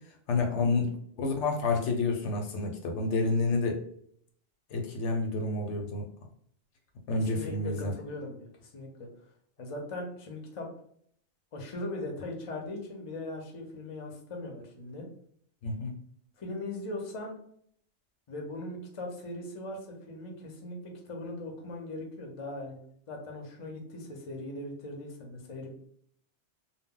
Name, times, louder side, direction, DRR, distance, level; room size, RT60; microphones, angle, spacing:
voice 1, 0.3-3.8 4.7-6.1 7.1-7.9 15.6-16.0, left 3 dB, 75° left, 2 dB, 0.9 m, -29 dB
voice 2, 7.1-9.1 9.6-10.7 11.5-15.0 16.4-17.3 18.3-22.8 23.1-25.7, left 2 dB, 40° left, 1 dB, 0.5 m, -39 dB
2.1 x 2.0 x 3.6 m, 0.65 s
omnidirectional pair, 1.2 m